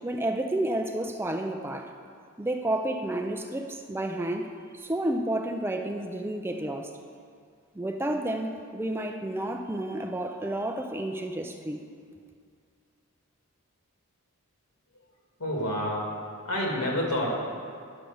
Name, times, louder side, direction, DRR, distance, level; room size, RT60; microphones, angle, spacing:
voice 1, 0.0-1.9 2.4-6.9 7.8-11.8, right 1 dB, 10° right, 4 dB, 0.4 m, -31 dB
voice 2, 15.4-16.1 16.4-17.3, left 1 dB, 85° left, -2 dB, 2.3 m, -28 dB
10.5 x 5.1 x 7.0 m, 2.2 s
head